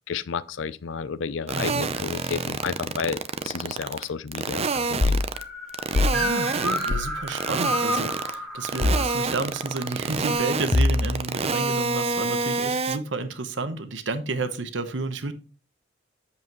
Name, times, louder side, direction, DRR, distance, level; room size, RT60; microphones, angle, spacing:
voice 1, 0.1-5.2, left 6 dB, 80° left, 0.5 m, -32 dB
sound 1, 1.5-4.0 4.3-5.4 5.7-6.9 7.3-8.3 8.6-13.0, right 4 dB, 35° right, 0.6 m, -26 dB
voice 2, 1.5-1.9 6.1-15.3, right 3 dB, 70° right, 1.0 m, -31 dB
sound 2, 5.0-5.3 5.9-6.2 6.9-7.2 8.8-9.1 10.7-11.2, left 2 dB, 30° left, 0.5 m, -22 dB
sound 3, 5.3-10.3, equal, ahead, 1.9 m, -32 dB
8.2 x 7.3 x 3.0 m
head